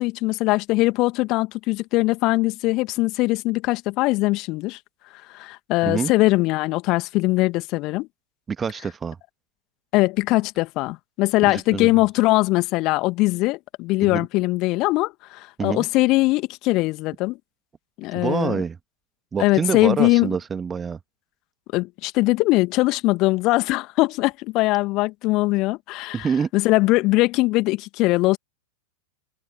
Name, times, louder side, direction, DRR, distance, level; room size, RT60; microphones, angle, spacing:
voice 1, 0.0-4.8 5.3-8.1 9.9-17.4 18.0-18.6 19.4-20.3 21.7-28.4, left 21 dB, 40° left, 2.1 m, -21 dB
voice 2, 8.5-9.2 11.4-11.9 14.0-14.3 15.6-15.9 18.1-18.8 19.3-21.0 26.1-26.5, right 6 dB, 20° right, 1.8 m, -26 dB
figure-of-eight pair, 90°, 0 cm